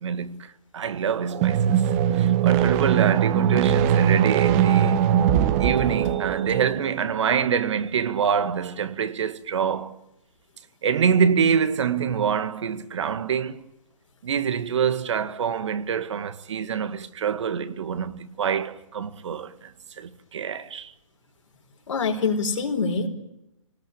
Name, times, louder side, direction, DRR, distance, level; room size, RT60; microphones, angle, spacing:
voice 1, 0.0-1.8 2.1-5.2 5.6-9.9 10.8-13.6 14.2-20.9, right 7 dB, 60° right, 1.8 m, -25 dB
sound 1, 1.3-6.9, right 9 dB, 30° right, 1.3 m, -21 dB
voice 2, 21.9-23.1, left 4 dB, 65° left, 4.5 m, -25 dB
25.5 x 19.0 x 8.6 m
hypercardioid pair, 140°, 17 cm